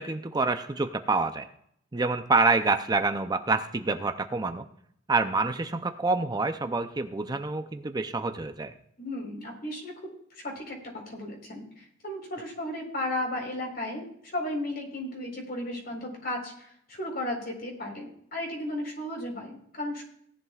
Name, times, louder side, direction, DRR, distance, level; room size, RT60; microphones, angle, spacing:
voice 1, 0.0-1.5 1.9-4.6 5.1-8.7, right 3 dB, 20° right, 8 dB, 0.5 m, -27 dB
voice 2, 9.0-9.9 10.3-14.1 14.3-20.0, left 1 dB, 55° left, 1 dB, 4.3 m, -34 dB
18.0 x 11.0 x 2.4 m, 0.68 s
head